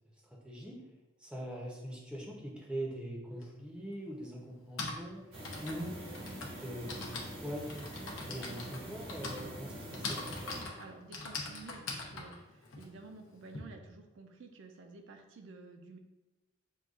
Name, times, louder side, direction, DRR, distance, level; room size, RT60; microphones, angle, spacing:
voice 1, 0.4-0.8 1.2-5.2 5.6-6.0 6.6-7.0 7.4-7.9 8.3-10.4, right 1 dB, 5° right, -2 dB, 0.6 m, -42 dB
Typing, 3.4-3.5 4.5-13.6, left 3 dB, 80° left, 0.7 m, -42 dB
sound 1, 5.3-10.6, right 1 dB, 85° right, 1.2 m, -45 dB
voice 2, 10.6-16.0, right 3 dB, 65° right, 4 dB, 0.4 m, -52 dB
6.3 x 2.3 x 2.4 m, 1.1 s
head